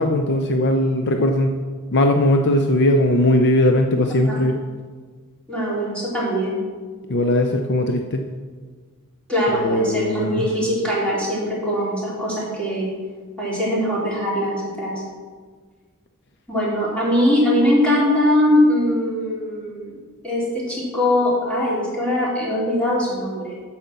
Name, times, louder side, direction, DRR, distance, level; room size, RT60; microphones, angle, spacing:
voice 1, 0.0-1.6 1.9-4.5 7.1-8.2 9.6-10.5, left 1 dB, 50° left, 4 dB, 0.6 m, -19 dB
voice 2, 5.5-6.6 9.3-12.9 13.4-14.9 16.5-19.9 20.2-23.6, left 1 dB, 5° left, -7 dB, 3.4 m, -21 dB
9.1 x 5.7 x 7.0 m, 1.5 s
head